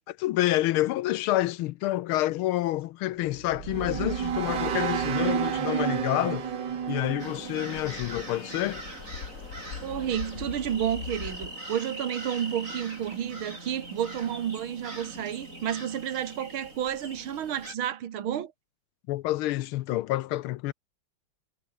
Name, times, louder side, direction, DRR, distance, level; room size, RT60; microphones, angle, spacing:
voice 1, 0.0-6.5 6.9-8.8 19.1-20.7, left 16 dB, 80° left, 1.5 m, -28 dB
sound 1, 3.2-8.5, right 8 dB, 55° right, 2.1 m, -31 dB
sound 2, 5.8-11.6, left 7 dB, 55° left, 2.3 m, -43 dB
sound 3, 7.2-17.8, right 1 dB, 35° right, 8.5 m, -42 dB
voice 2, 9.8-18.5, right 10 dB, 70° right, 2.3 m, -31 dB
omnidirectional pair, 2.4 m